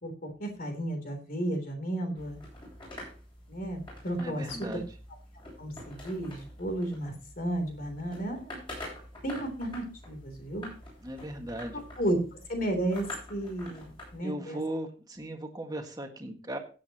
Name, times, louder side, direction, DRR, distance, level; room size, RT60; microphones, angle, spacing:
voice 1, 0.0-2.4 3.5-4.4 5.6-8.6 9.2-10.7 11.7-12.2 12.5-13.8 14.1-14.6, right 1 dB, 50° left, 5 dB, 3.2 m, -33 dB
sound 1, 2.2-14.2, left 1 dB, 30° left, 7.5 m, -46 dB
voice 2, 4.2-4.9 11.0-11.8 14.2-16.6, right 1 dB, 20° right, 4 dB, 1.7 m, -37 dB
16.0 x 8.6 x 2.9 m, 0.36 s
head